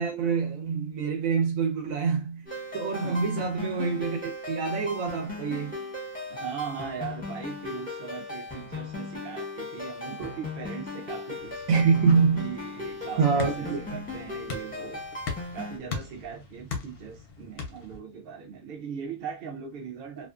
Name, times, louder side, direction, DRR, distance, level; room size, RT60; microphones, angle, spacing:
voice 1, 0.0-2.4 2.7-5.8 11.7-12.5 13.2-14.0, right 5 dB, 70° right, 1.1 m, -26 dB
sound 1, 2.5-15.8, left 3 dB, 10° left, 0.7 m, -37 dB
voice 2, 3.0-3.4 6.3-11.7 12.3-15.0 15.5-20.3, right 7 dB, 50° right, 0.7 m, -39 dB
sound 2, 11.4-18.0, left 5 dB, 55° left, 0.7 m, -40 dB
2.5 x 2.4 x 2.4 m
omnidirectional pair, 1.5 m